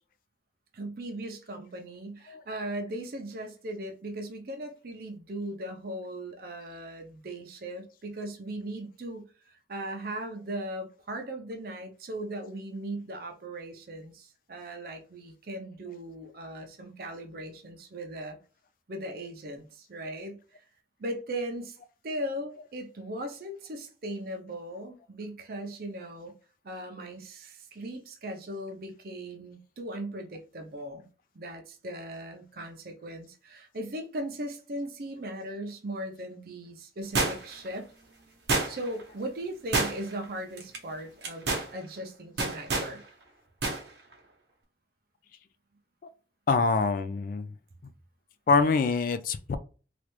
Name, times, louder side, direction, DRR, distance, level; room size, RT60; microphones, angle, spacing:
voice 1, 0.7-18.4 18.9-20.4 21.0-21.8 22.0-26.3 26.6-31.1 31.3-37.9 38.7-43.0, right 1 dB, 55° right, 0.6 m, -38 dB
sound 1, 37.2-37.7 38.5-39.0 39.7-40.2 40.6-40.8 41.2-41.7 42.4-42.9 43.6-43.8 44.1-44.2, right 3 dB, 75° right, 0.9 m, -28 dB
voice 2, 46.5-47.5 48.5-49.6, left 4 dB, 50° left, 0.3 m, -25 dB
3.2 x 2.5 x 3.0 m
head